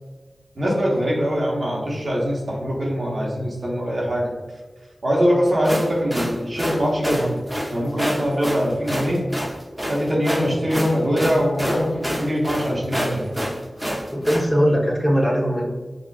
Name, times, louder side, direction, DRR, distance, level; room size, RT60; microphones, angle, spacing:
voice 1, 0.6-4.3 5.0-7.4 7.7-9.2 9.9-13.3, equal, 70° right, -3 dB, 1.1 m, -22 dB
sound 1, 5.5-14.5, equal, 15° right, 0.8 m, -27 dB
voice 2, 14.1-15.7, equal, 15° left, -3 dB, 1.0 m, -20 dB
5.0 x 2.4 x 2.4 m, 1.3 s
cardioid pair, 45°, 0 cm